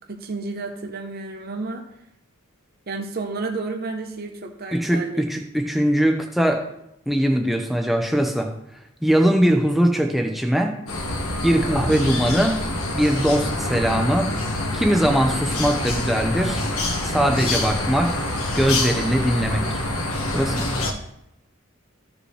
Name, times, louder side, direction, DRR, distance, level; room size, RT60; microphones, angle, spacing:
voice 1, 0.1-1.9 2.9-5.2 11.7-11.9, right 3 dB, 45° right, 4 dB, 0.8 m, -31 dB
voice 2, 4.7-6.7 7.1-8.5 9.0-10.8 11.4-12.6 12.9-14.3 14.7-16.6 17.0-18.2 18.5-19.8 20.3-20.7, equal, ahead, 3 dB, 0.8 m, -21 dB
sound 1, 10.9-20.9, left 1 dB, 75° left, 1.5 m, -26 dB
15.0 x 5.2 x 3.3 m, 0.81 s
head